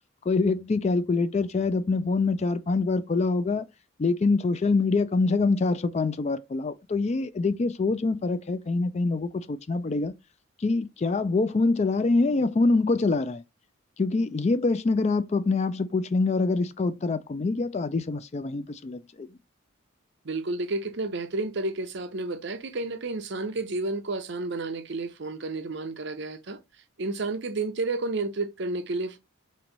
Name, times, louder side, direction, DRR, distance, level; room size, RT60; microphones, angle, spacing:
voice 1, 0.3-3.7 4.0-10.1 10.6-13.4 14.0-19.3, left 3 dB, 30° left, 0.4 m, -25 dB
voice 2, 20.2-26.6 27.0-29.2, right 3 dB, 55° right, 0.7 m, -31 dB
4.4 x 3.0 x 3.9 m
head